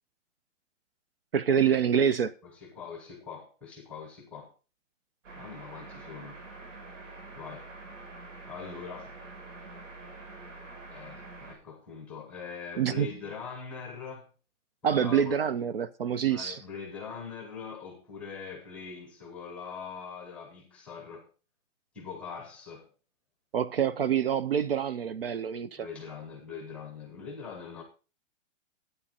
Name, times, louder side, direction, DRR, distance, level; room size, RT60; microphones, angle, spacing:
voice 1, 1.3-2.3 12.8-13.1 14.8-16.6 23.5-25.9, right 8 dB, 50° right, 0.7 m, -26 dB
voice 2, 2.4-4.5 5.3-6.4 7.3-7.7 8.5-9.1 10.9-14.3 14.8-15.4 16.3-21.3 21.9-22.9 25.8-27.8, left 6 dB, 5° left, 0.8 m, -42 dB
sound 1, 5.2-11.6, right 3 dB, 75° right, 6.3 m, -46 dB
12.0 x 8.9 x 3.8 m
hypercardioid pair, 180°, 38 cm